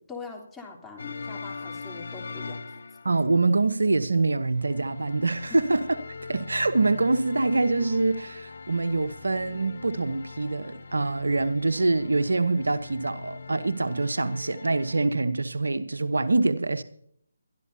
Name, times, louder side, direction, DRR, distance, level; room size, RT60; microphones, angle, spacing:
voice 1, 0.1-2.6, left 4 dB, 5° left, 3.2 m, -42 dB
sound 1, 1.0-3.5 4.5-15.1, left 4 dB, 65° left, 0.9 m, -42 dB
voice 2, 3.0-5.8 6.3-16.8, right 3 dB, 80° right, 1.0 m, -25 dB
22.5 x 13.0 x 2.8 m
figure-of-eight pair, 150°, 0 cm